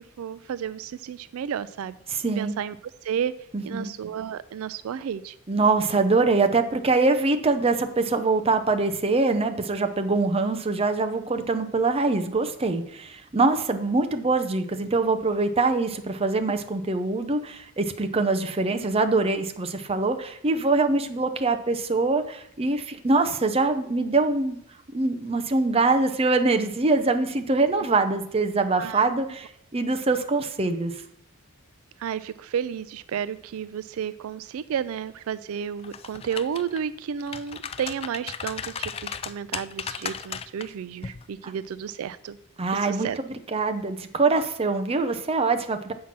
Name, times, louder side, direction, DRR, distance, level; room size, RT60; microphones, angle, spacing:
voice 1, 0.0-1.9 2.4-2.8 3.0-3.3 3.6-5.4 28.8-29.1 32.0-42.4 42.7-43.2, right 8 dB, 75° right, 16 dB, 0.3 m, -32 dB
voice 2, 2.1-2.5 3.5-3.9 5.5-24.6 24.9-31.0 41.4-41.5 42.6-45.9, right 3 dB, 25° right, 7 dB, 0.6 m, -24 dB
sound 1, 35.8-36.8 37.2-40.7 41.0-41.2, left 7 dB, 25° left, 0.3 m, -35 dB
7.4 x 5.7 x 5.9 m, 0.71 s
head